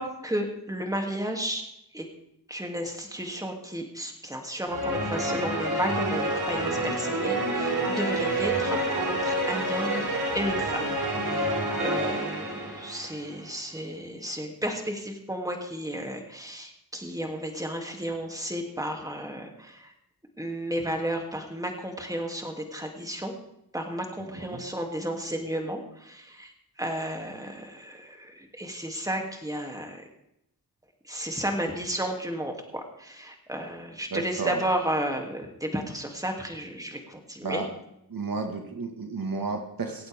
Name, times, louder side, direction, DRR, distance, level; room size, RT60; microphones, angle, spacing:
voice 1, 0.0-1.6 1.9-2.1 2.5-10.1 10.3-10.9 11.2-19.9 20.4-23.3 23.7-26.5 26.8-30.0 31.1-37.6, equal, 10° right, 2 dB, 2.8 m, -33 dB
sound 1, 4.7-13.2, right 1 dB, 80° right, 5.1 m, -28 dB
voice 2, 24.3-24.6 34.1-34.6 37.4-37.7 38.1-40.1, right 4 dB, 60° right, 4 dB, 1.9 m, -32 dB
24.5 x 8.7 x 3.7 m, 0.79 s
cardioid pair, 45°, 38 cm